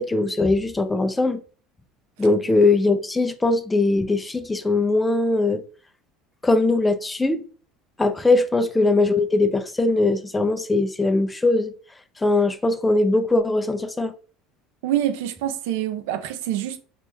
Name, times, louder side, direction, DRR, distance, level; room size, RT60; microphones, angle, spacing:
voice 1, 0.0-1.4 2.2-5.6 6.4-7.4 8.0-11.7 12.2-14.1, left 2 dB, 15° left, 0.4 m, -20 dB
voice 2, 14.8-16.8, right 12 dB, 85° right, 0.5 m, -26 dB
4.3 x 2.9 x 2.2 m
supercardioid pair, 110°, 0 cm